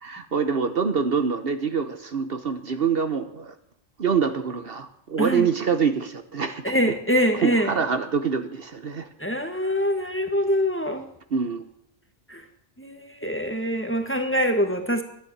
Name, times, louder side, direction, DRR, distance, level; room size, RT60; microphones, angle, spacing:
voice 1, 0.0-3.5 4.0-6.7 7.4-9.1 11.3-11.6, right 6 dB, 55° right, 8 dB, 1.2 m, -25 dB
voice 2, 5.2-5.5 6.6-7.7 9.2-11.0 12.3-12.4 12.8-15.0, equal, 10° left, 5 dB, 1.5 m, -24 dB
13.0 x 10.0 x 8.6 m, 0.71 s
omnidirectional pair, 1.2 m